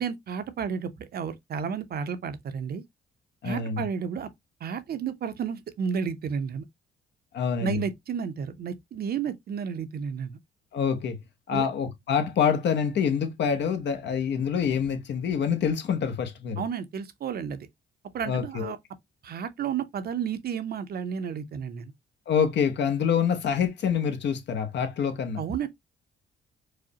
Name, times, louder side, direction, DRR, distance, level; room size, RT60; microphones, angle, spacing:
voice 1, 0.0-2.8 3.4-4.3 4.6-6.7 7.6-10.4 11.5-11.7 16.6-17.7 18.1-18.8 19.2-21.9 25.4-25.7, right 7 dB, 50° right, 0.6 m, -32 dB
voice 2, 3.4-3.9 7.3-7.8 10.7-11.2 11.5-16.6 18.3-18.7 22.3-25.4, left 7 dB, 60° left, 0.8 m, -26 dB
4.8 x 2.1 x 2.7 m
cardioid pair, 90°, 20 cm